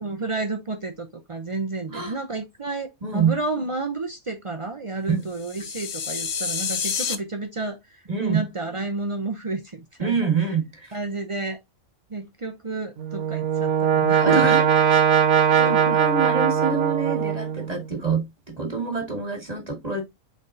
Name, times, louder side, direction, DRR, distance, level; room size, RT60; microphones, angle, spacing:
voice 1, 0.0-10.3 10.9-11.6 12.1-14.8 15.6-16.0, right 3 dB, 55° right, 0.3 m, -30 dB
voice 2, 3.0-3.3 5.1-5.2 8.1-8.4 10.0-10.9 14.2-14.6 15.7-20.0, right 5 dB, 30° right, 1.8 m, -26 dB
sound 1, 5.3-7.2, left 6 dB, 65° left, 0.4 m, -28 dB
Brass instrument, 13.0-17.8, right 8 dB, 75° right, 1.2 m, -20 dB
4.8 x 3.8 x 2.6 m
omnidirectional pair, 1.5 m